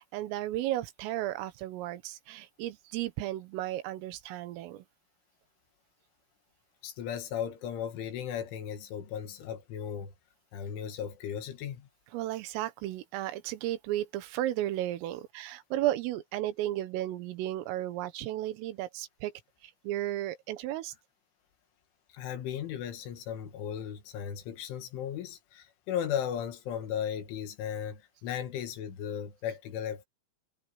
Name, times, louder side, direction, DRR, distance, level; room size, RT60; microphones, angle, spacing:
voice 1, 0.0-4.9 12.1-19.3 19.6-20.9, right 14 dB, 90° right, 3.9 m, -34 dB
voice 2, 6.8-10.1 10.5-11.9 22.1-30.1, left 9 dB, 75° left, 4.3 m, -36 dB
omnidirectional pair, 5.7 m